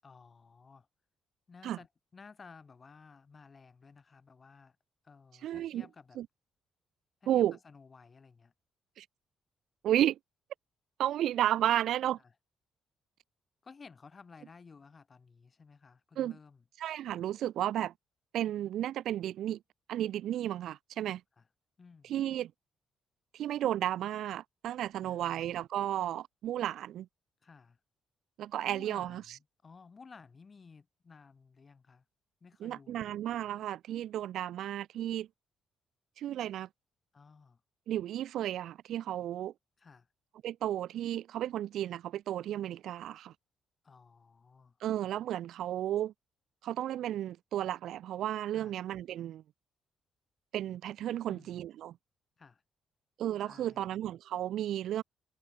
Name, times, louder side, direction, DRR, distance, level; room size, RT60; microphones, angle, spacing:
voice 1, 0.0-0.9 1.5-4.8 5.0-6.2 7.2-8.5 12.2-12.3 13.6-16.6 21.4-21.5 21.8-22.2 25.0-25.5 27.4-27.8 28.6-32.0 32.4-33.2 37.1-37.6 39.8-40.1 43.8-44.8 48.5-48.8 51.3-51.6 52.4-52.6 53.4-53.9, left 5 dB, 35° left, 5.9 m, -55 dB
voice 2, 5.4-5.8 6.2-6.3 7.3-7.6 9.0-9.1 9.8-10.2 11.0-12.2 16.2-16.3 16.8-17.9 18.3-19.6 19.9-21.2 22.0-22.5 23.3-27.1 28.4-29.2 32.6-35.3 36.2-36.7 37.9-39.5 40.4-43.3 44.8-46.1 46.6-49.4 50.5-51.9 53.2-55.0, right 12 dB, 75° right, 1.2 m, -33 dB
cardioid pair, 90°, 0 cm